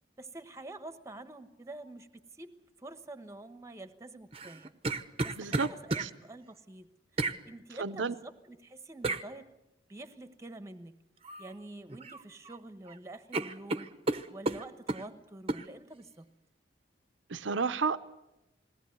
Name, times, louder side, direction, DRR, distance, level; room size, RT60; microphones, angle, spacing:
voice 1, 0.2-2.1 2.3-2.5 2.8-6.9 7.2-9.5 9.9-11.0 11.4-13.9 14.3-16.3, right 2 dB, 15° right, 1.2 m, -47 dB
sound 1, 4.3-6.1 7.2-7.4 9.0-9.3 11.2-11.5 11.9-12.6 12.9-13.0 13.3-15.1 15.5-15.7, right 2 dB, 30° right, 0.9 m, -33 dB
voice 2, 5.4-5.7 6.0-6.1 7.8-8.1 17.3-18.0, right 4 dB, 85° right, 0.8 m, -31 dB
21.0 x 18.0 x 9.4 m
head